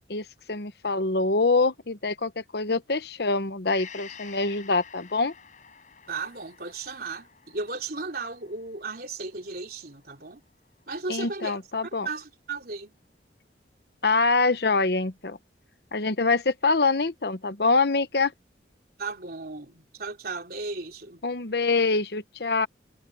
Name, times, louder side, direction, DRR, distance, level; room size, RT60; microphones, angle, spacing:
voice 1, 0.1-5.3 11.1-12.1 14.0-15.4 15.9-18.3 21.2-22.7, left 3 dB, 55° left, 1.0 m, -25 dB
Gong, 3.7-11.3 11.7-11.8, left 7 dB, 40° left, 7.8 m, -50 dB
voice 2, 6.1-10.4 10.9-12.9 19.0-21.2, right 3 dB, 50° right, 3.7 m, -35 dB
head